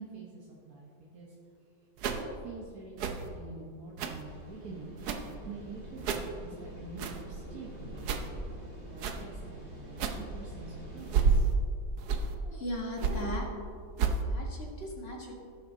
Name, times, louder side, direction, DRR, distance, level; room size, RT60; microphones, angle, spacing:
voice 1, 0.0-1.3 2.1-4.9 5.4-8.1 8.9-11.6, right 3 dB, 50° right, -5 dB, 1.4 m, -46 dB
sound 1, 2.0-2.2 3.0-3.3 4.0-4.2 5.0-5.4 6.0-6.3 7.0-7.2 8.0-8.3 9.0-9.2 10.0-10.2 11.0-11.5 12.0-12.3 13.0-13.2 14.0-14.2, right 5 dB, 65° right, 1.0 m, -30 dB
sound 2, 4.2-11.4, right 1 dB, 25° right, 2.4 m, -45 dB
voice 2, 12.4-13.4 14.2-15.3, left 1 dB, 30° left, -2 dB, 1.6 m, -37 dB
17.5 x 7.3 x 2.7 m, 2.3 s
omnidirectional pair, 2.3 m